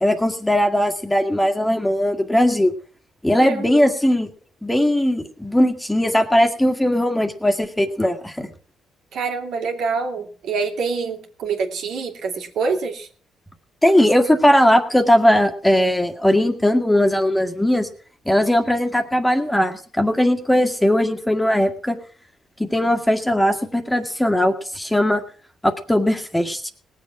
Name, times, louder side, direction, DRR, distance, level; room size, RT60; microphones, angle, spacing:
voice 1, 0.0-2.7 3.2-4.3 4.6-8.5 13.8-17.9 18.3-22.0 22.6-25.2 25.6-26.7, left 1 dB, 5° left, 5 dB, 1.8 m, -19 dB
voice 2, 3.4-3.8 9.1-13.1, right 5 dB, 75° right, 3 dB, 2.6 m, -26 dB
19.0 x 7.5 x 5.9 m, 0.43 s
cardioid pair, 90°, 0 cm